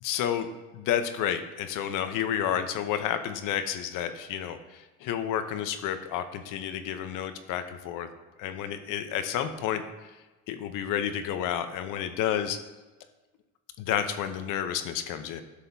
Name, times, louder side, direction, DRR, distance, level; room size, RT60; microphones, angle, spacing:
voice 1, 0.0-8.1 8.4-9.8 10.5-12.6 13.8-15.4, left 9 dB, 65° left, 9 dB, 0.9 m, -30 dB
11.5 x 6.6 x 2.7 m, 1.2 s
supercardioid pair, 90°, 34 cm